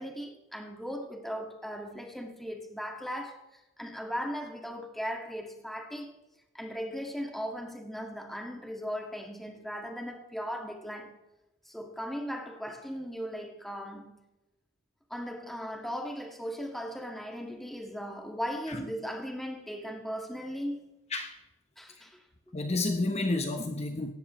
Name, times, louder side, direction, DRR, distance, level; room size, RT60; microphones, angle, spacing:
voice 1, 0.0-6.1 6.5-11.2 11.7-14.2 15.1-21.0 21.8-22.3, equal, ahead, 1.8 m, -38 dB
voice 2, 22.5-24.1, left 2 dB, 35° left, 0.9 m, -30 dB
18.0 x 15.0 x 3.1 m
head